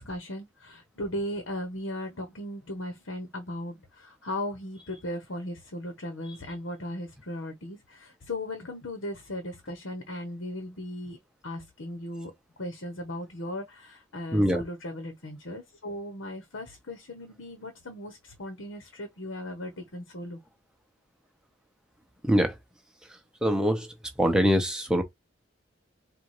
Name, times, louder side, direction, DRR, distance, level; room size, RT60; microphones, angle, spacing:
voice 1, 0.0-11.2 11.4-12.3 12.6-20.4, left 1 dB, 80° left, 1.1 m, -37 dB
voice 2, 14.3-14.6 22.2-22.6 23.1-25.0, equal, 5° right, 0.9 m, -24 dB
4.1 x 2.6 x 4.8 m
head